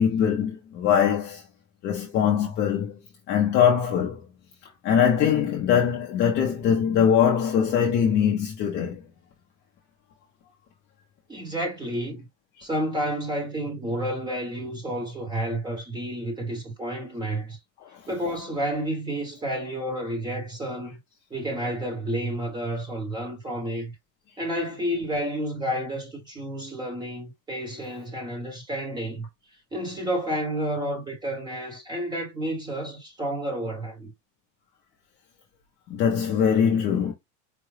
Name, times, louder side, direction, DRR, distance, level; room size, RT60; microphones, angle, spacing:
voice 1, 0.0-1.4 1.8-3.0 3.3-4.3 4.8-9.0 17.9-18.3 35.9-37.1, left 8 dB, 25° left, 0.5 m, -22 dB
voice 2, 11.3-12.3 12.6-17.6 18.1-20.9 21.3-23.9 24.4-29.3 29.7-34.1, right 1 dB, 10° right, 0.9 m, -30 dB
4.7 x 2.1 x 3.2 m
cardioid pair, 175°, 41 cm